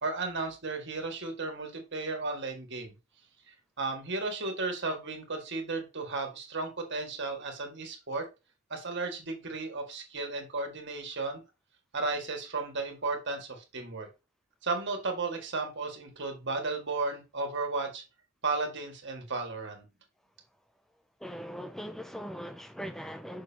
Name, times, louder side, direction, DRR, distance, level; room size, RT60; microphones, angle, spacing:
voice 1, 0.0-2.9 3.5-8.3 8.7-11.4 11.9-14.1 14.6-18.0 18.4-19.8, right 3 dB, 55° right, 1.9 m, -34 dB
voice 2, 21.2-23.4, equal, ahead, 0.4 m, -40 dB
6.7 x 6.2 x 2.9 m
head